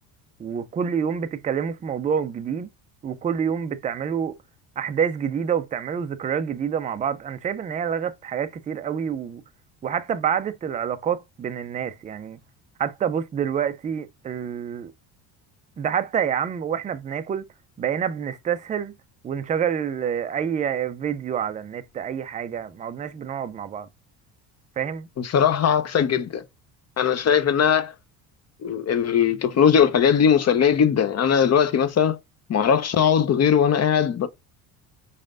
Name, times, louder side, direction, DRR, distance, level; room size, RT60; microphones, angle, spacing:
voice 1, 0.4-2.7 3.0-4.3 4.8-9.4 9.8-12.4 12.8-14.9 15.8-17.5 17.8-18.9 19.2-23.9 24.8-25.1, right 8 dB, 15° right, 0.3 m, -27 dB
voice 2, 25.2-26.4 27.0-27.9 28.6-32.2 32.5-34.3, left 8 dB, 30° left, 0.6 m, -20 dB
4.2 x 3.2 x 2.4 m
hypercardioid pair, 75°, 49 cm